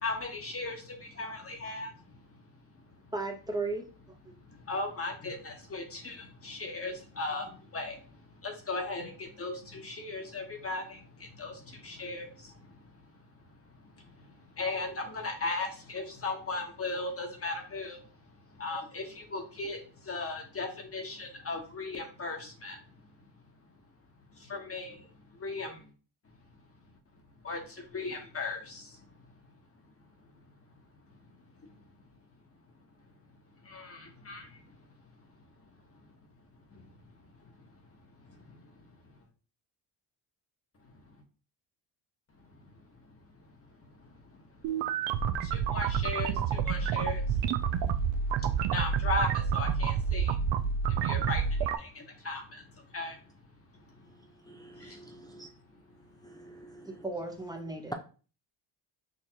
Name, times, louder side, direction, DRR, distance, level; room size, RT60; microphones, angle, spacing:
voice 1, 0.0-1.9 4.7-7.5 7.7-8.0 8.4-11.0 11.4-11.5 11.8-12.3 14.6-18.0 18.6-19.8 20.1-22.8 24.5-25.0 25.4-25.8 27.4-27.6 27.9-28.8 33.7-34.4 45.5-47.2 48.7-50.3 51.0-51.4 51.8-52.6 52.9-53.1, left 3 dB, 30° left, 1.2 m, -36 dB
voice 2, 3.1-3.9 4.2-4.3 56.9-57.9, right 3 dB, 10° right, 0.8 m, -35 dB
sound 1, 44.6-51.8, right 7 dB, 70° right, 0.6 m, -29 dB
voice 3, 54.5-55.5 56.2-57.0, right 2 dB, 10° left, 0.4 m, -51 dB
6.5 x 2.5 x 2.9 m
cardioid pair, 110°, 47 cm